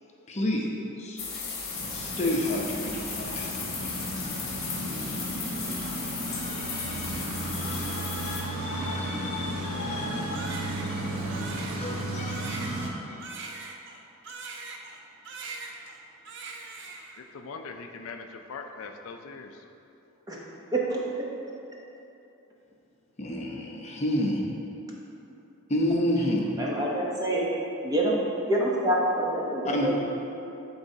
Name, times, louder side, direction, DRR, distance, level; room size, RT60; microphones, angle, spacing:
voice 1, 0.3-0.7 1.0-1.5 1.9-3.6 3.9-11.3 11.8-13.5 23.2-24.4 25.7-26.4 29.6-30.0, left 1 dB, 30° left, -2 dB, 0.7 m, -32 dB
sound 1, 1.2-8.4, left 4 dB, 45° left, 1.1 m, -35 dB
sound 2, 1.7-12.9, right 1 dB, 85° right, 1.0 m, -34 dB
Crying sobbing, 10.3-15.0 15.3-16.0 16.3-17.2, right 4 dB, 55° right, 0.5 m, -41 dB
voice 2, 17.3-19.6, left 4 dB, 70° left, 4 dB, 0.4 m, -41 dB
voice 3, 20.7-21.0 26.6-27.5 27.8-30.0, right 1 dB, 15° right, -4 dB, 0.8 m, -26 dB
11.0 x 4.0 x 2.8 m, 2.8 s
head